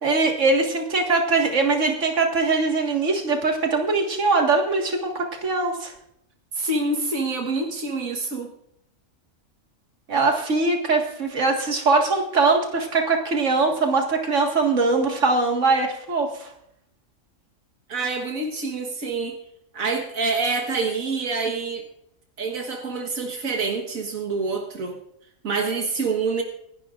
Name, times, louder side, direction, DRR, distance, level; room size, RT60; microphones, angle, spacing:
voice 1, 0.0-5.9 10.1-16.5, right 3 dB, 65° right, 2 dB, 2.2 m, -21 dB
voice 2, 6.5-8.5 17.9-19.4 19.7-21.8 22.4-25.0 25.4-26.4, right 3 dB, 90° right, 2 dB, 1.8 m, -26 dB
27.5 x 11.0 x 2.5 m, 0.76 s
omnidirectional pair, 1.4 m